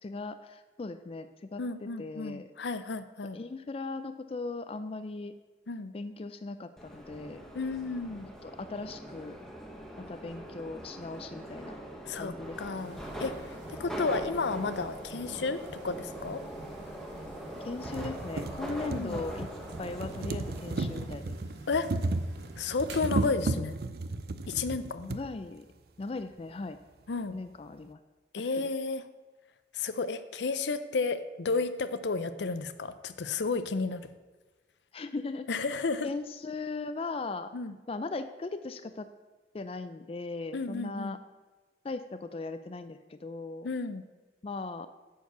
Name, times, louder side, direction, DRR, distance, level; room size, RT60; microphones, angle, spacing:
voice 1, 0.0-2.5 3.3-5.3 5.9-7.5 8.4-9.4 10.0-11.8 12.1-12.8 17.6-19.5 19.8-21.3 25.1-25.7 26.0-26.8 27.3-28.0 28.6-28.7 34.9-35.5 36.0-37.5 37.9-39.1 39.5-41.2 41.8-43.7 44.4-44.9, left 3 dB, 35° left, 10 dB, 0.4 m, -38 dB
voice 2, 1.6-3.4 5.7-5.9 7.5-8.3 12.1-12.3 12.6-16.4 18.9-19.2 21.7-21.9 22.6-23.7 24.5-25.1 27.1-27.4 28.3-29.0 29.7-34.1 35.5-36.1 37.5-37.7 40.5-41.2 43.6-44.0, left 4 dB, 80° left, 12 dB, 0.6 m, -32 dB
Subway metro underground, 6.8-21.1, right 1 dB, 5° left, 1.0 m, -42 dB
sound 1, 12.7-23.1, right 2 dB, 75° right, 1.1 m, -49 dB
sound 2, 15.7-15.8 16.7-16.8 17.3-17.4 17.7-25.2 26.2-26.3 26.5-26.6, right 2 dB, 60° right, 0.5 m, -34 dB
9.4 x 4.6 x 6.6 m, 1.3 s
head